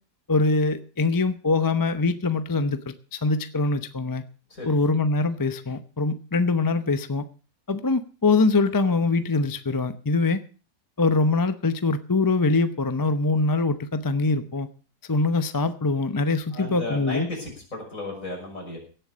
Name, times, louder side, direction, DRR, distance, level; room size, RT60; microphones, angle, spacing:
voice 1, 0.3-4.2 4.7-7.2 7.7-10.4 11.0-14.7 15.1-17.3, left 3 dB, 25° left, 11 dB, 0.5 m, -23 dB
voice 2, 4.5-4.8 16.5-18.8, left 2 dB, 55° left, 0 dB, 6.5 m, -34 dB
17.0 x 8.0 x 6.2 m, 0.38 s
omnidirectional pair, 1.7 m